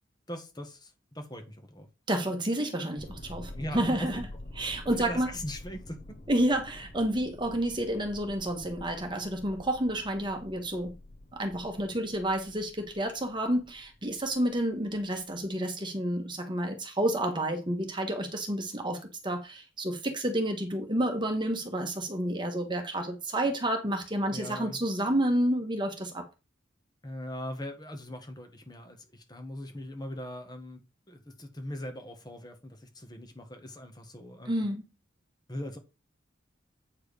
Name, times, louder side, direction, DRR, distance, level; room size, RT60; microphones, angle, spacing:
voice 1, 0.3-1.9 3.5-4.1 4.6-6.2 24.3-24.8 27.0-30.8 31.1-34.6 35.5-35.8, left 1 dB, 20° left, 1.5 m, -41 dB
voice 2, 2.1-4.3 4.5-5.3 6.3-10.9 11.3-26.3 34.5-34.8, right 1 dB, 25° right, 1.3 m, -30 dB
sound 1, 3.0-15.5, left 1 dB, 40° left, 0.9 m, -48 dB
8.7 x 4.7 x 4.9 m
head